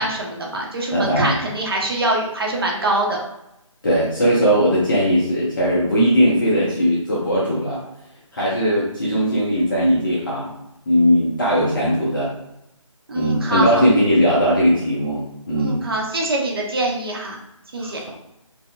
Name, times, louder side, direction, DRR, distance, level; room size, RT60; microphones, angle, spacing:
voice 1, 0.0-3.2 13.1-13.8 15.6-17.4 17.7-18.0, right 2 dB, 45° right, -1 dB, 0.7 m, -24 dB
voice 2, 0.9-1.4 3.8-7.8 8.3-10.5 10.9-12.3 13.1-15.8 17.8-18.1, equal, 40° left, -6 dB, 0.8 m, -19 dB
5.1 x 2.2 x 2.3 m, 0.85 s
figure-of-eight pair, 155°, 17 cm